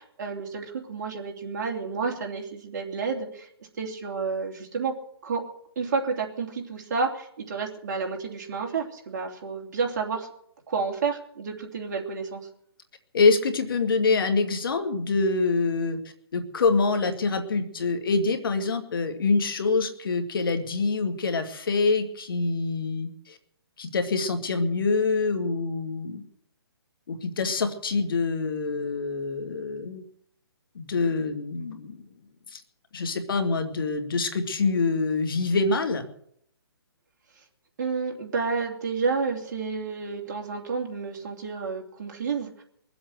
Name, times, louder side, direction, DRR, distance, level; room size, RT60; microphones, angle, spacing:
voice 1, 0.0-4.9 5.2-5.4 5.8-10.3 10.7-12.4 37.8-42.6, right 4 dB, 45° right, 1 dB, 2.9 m, -30 dB
voice 2, 13.1-16.0 16.3-23.4 23.8-26.2 27.1-30.0 30.8-32.0 32.5-32.6 32.9-36.1, left 4 dB, 60° left, 7 dB, 2.1 m, -25 dB
22.0 x 7.9 x 7.9 m, 0.69 s
hypercardioid pair, 150°, 13 cm